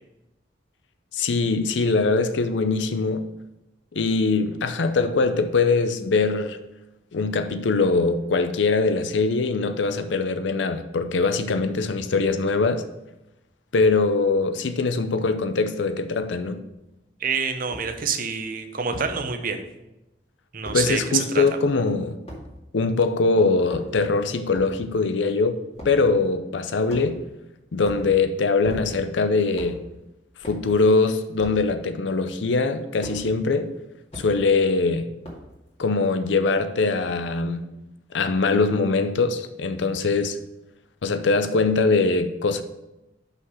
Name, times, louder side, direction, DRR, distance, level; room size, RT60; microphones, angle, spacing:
voice 1, 1.1-3.3 3.9-6.6 7.1-12.9 13.7-16.6 20.7-22.2 22.7-27.2 27.7-29.8 30.5-33.7 34.2-35.1 35.8-37.6 38.1-40.4 41.0-42.6, left 3 dB, 85° left, 0.6 m, -22 dB
sound 1, 16.7-16.8 17.7-17.9 18.9-19.1 20.6-20.8 22.3-22.4 23.5-24.1 24.5-24.8 25.7-26.0 26.9-27.3 27.8-28.1 28.6-29.1 29.5-29.8 30.4-30.7 31.4-31.6 33.0-33.2 34.1-34.3 35.2-35.5, equal, 35° left, 2.1 m, -38 dB
voice 2, 17.2-19.6 20.5-21.4, right 6 dB, 50° right, 0.8 m, -27 dB
5.8 x 5.8 x 5.5 m
head